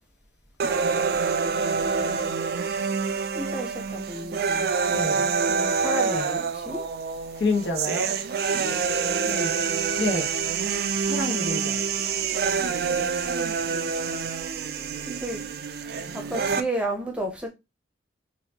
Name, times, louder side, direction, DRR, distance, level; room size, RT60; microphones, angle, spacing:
sound 1, 0.6-16.6, right 5 dB, 55° right, 0.4 m, -26 dB
voice 1, 1.5-2.4 3.3-4.7 5.5-6.9 9.2-9.6 12.9-14.2 15.0-15.4 16.1-17.5, right 1 dB, 5° right, 0.7 m, -33 dB
voice 2, 4.9-5.3 7.4-8.1 10.0-10.4 11.0-12.0, left 2 dB, 70° left, 1.0 m, -28 dB
4.1 x 2.6 x 2.8 m
head